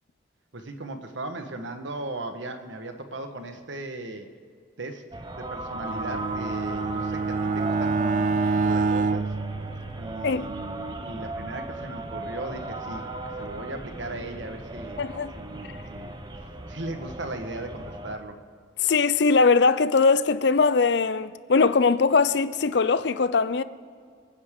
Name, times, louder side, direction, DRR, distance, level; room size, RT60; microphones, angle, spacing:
voice 1, 0.5-4.3 4.8-5.0 5.3-9.3 10.0-13.1 13.4-16.1 16.7-18.4, right 2 dB, 70° right, 1.3 m, -37 dB
sound 1, 5.1-18.2, right 2 dB, 20° right, 0.8 m, -37 dB
Bowed string instrument, 5.7-10.4, right 4 dB, 40° right, 0.3 m, -27 dB
voice 2, 15.0-15.3 18.8-23.6, left 4 dB, 60° left, 0.5 m, -21 dB
28.5 x 9.8 x 3.7 m
head